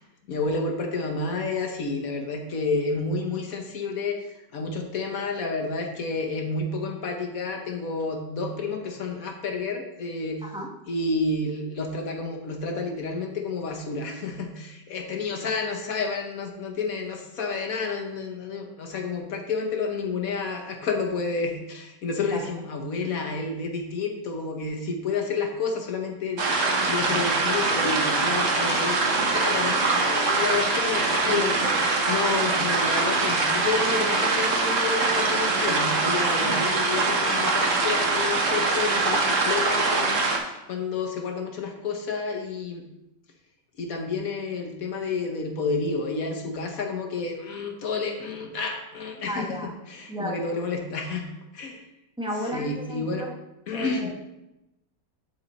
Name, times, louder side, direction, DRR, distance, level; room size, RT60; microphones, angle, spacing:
voice 1, 0.3-10.4 10.9-26.6 26.9-31.5 32.0-42.9 43.8-49.6 49.9-51.3 51.5-51.8 52.5-53.3 53.7-54.1, left 4 dB, 60° left, 3 dB, 1.2 m, -30 dB
voice 2, 10.4-10.7 22.3-22.7 31.3-31.8 36.3-36.6 49.3-49.7 50.1-50.6 52.2-53.4 53.7-54.1, right 1 dB, 5° right, 0 dB, 0.4 m, -34 dB
sound 1, 26.4-40.4, right 3 dB, 50° right, 1.3 m, -23 dB
12.0 x 4.2 x 4.0 m, 0.93 s
omnidirectional pair, 1.9 m